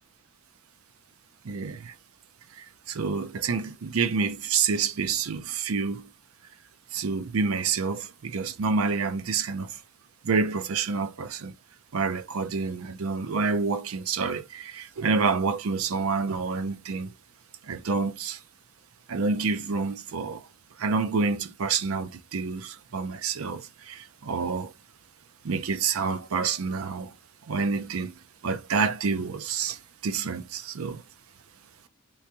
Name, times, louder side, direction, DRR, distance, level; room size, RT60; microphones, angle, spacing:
voice 1, 1.4-1.9 2.5-6.1 6.9-9.8 10.2-11.5 11.9-17.1 17.6-18.4 19.1-20.5 20.8-24.7 25.4-27.1 27.5-31.0, right 5 dB, 90° right, 0.5 m, -28 dB
3.4 x 3.0 x 2.9 m
head